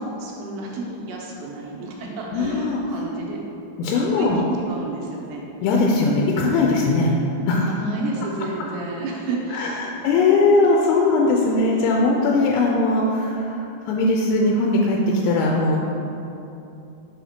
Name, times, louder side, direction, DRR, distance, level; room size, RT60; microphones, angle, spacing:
voice 1, 0.0-3.4 3.9-4.3 4.7-5.4 7.6-9.9, right 2 dB, 80° right, -2 dB, 2.6 m, -31 dB
voice 2, 2.3-2.8 3.8-4.4 5.6-7.1 7.5-7.7 9.5-13.6 13.9-15.0 15.2-15.8, left 3 dB, 85° left, -2 dB, 2.9 m, -19 dB
7.4 x 5.7 x 2.8 m, 2.9 s
omnidirectional pair, 5.4 m